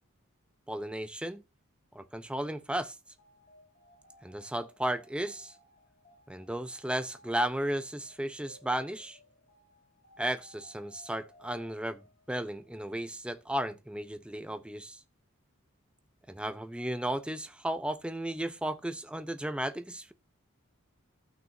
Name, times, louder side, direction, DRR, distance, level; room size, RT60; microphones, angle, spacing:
voice 1, 0.7-1.4 1.9-3.0 4.2-5.5 6.3-9.2 10.2-12.0 12.3-15.0 16.3-20.1, right 1 dB, 5° right, 0.4 m, -34 dB
sound 1, 3.1-12.9, left 1 dB, 35° left, 4.5 m, -61 dB
15.0 x 6.0 x 2.6 m
head